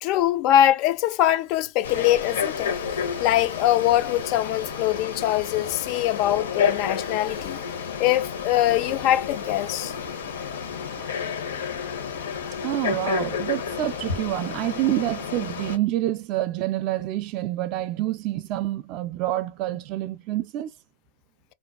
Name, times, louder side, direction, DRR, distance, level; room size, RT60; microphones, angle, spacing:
voice 1, 0.0-2.7 3.2-7.6 8.0-9.9, left 13 dB, 45° left, 0.3 m, -22 dB
Frog, 1.8-15.8, left 6 dB, 85° left, 0.9 m, -31 dB
voice 2, 12.6-20.7, right 14 dB, 45° right, 0.3 m, -27 dB
2.4 x 2.2 x 2.3 m
hypercardioid pair, 125°, 0 cm